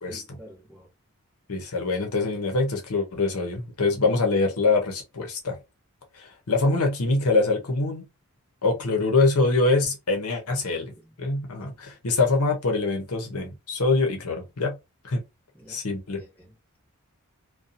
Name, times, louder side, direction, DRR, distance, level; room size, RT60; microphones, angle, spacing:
voice 1, 0.0-0.9 10.5-11.2 15.5-15.8 16.1-16.8, equal, 10° left, 1.2 m, -50 dB
voice 2, 1.5-5.6 6.1-8.0 8.6-10.8 11.2-14.8 15.0-15.2 15.7-16.2, left 3 dB, 80° left, 0.8 m, -24 dB
2.6 x 2.3 x 2.5 m
head